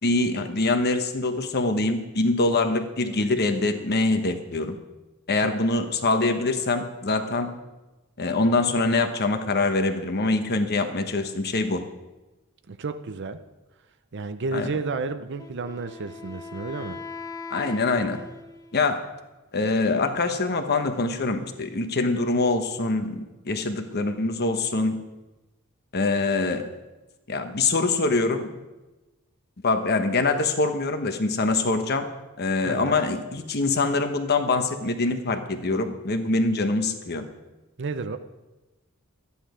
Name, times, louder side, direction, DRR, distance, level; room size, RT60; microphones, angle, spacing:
voice 1, 0.0-4.8 5.3-7.6 8.2-11.8 14.5-14.7 17.5-18.2 18.7-19.0 19.5-25.0 25.9-26.6 27.3-28.5 29.6-32.1 32.4-37.3, left 3 dB, 50° left, 7 dB, 1.1 m, -24 dB
voice 2, 12.7-13.4 14.1-17.0 32.6-33.0 37.8-38.2, right 3 dB, 55° right, 10 dB, 0.6 m, -31 dB
Wind instrument woodwind instrument, 15.4-19.0, left 4 dB, 15° left, 0.9 m, -40 dB
13.0 x 10.0 x 5.0 m, 1.1 s
head